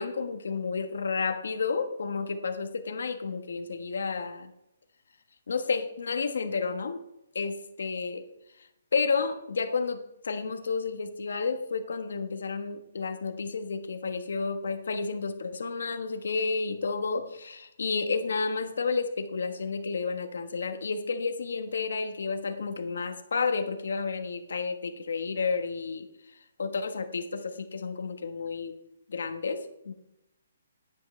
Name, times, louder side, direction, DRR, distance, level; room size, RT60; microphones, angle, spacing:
voice 1, 0.0-4.5 5.5-7.0 7.3-8.3 8.9-26.1 26.6-28.8 29.1-29.9, left 4 dB, 70° left, 7 dB, 1.3 m, -31 dB
11.0 x 9.0 x 3.3 m, 0.84 s
hypercardioid pair, 175°, 0 cm